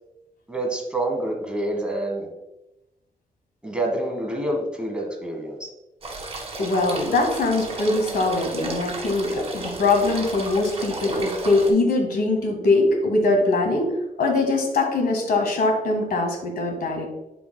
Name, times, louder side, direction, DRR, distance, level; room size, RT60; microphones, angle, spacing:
voice 1, 0.5-2.3 3.6-5.7, right 1 dB, 5° right, 0 dB, 1.2 m, -27 dB
sound 1, 6.0-11.7, right 2 dB, 40° right, 1.6 m, -33 dB
voice 2, 6.6-17.1, left 2 dB, 90° left, 2 dB, 1.7 m, -22 dB
11.0 x 4.7 x 2.2 m, 0.95 s
wide cardioid pair, 160°, 15 cm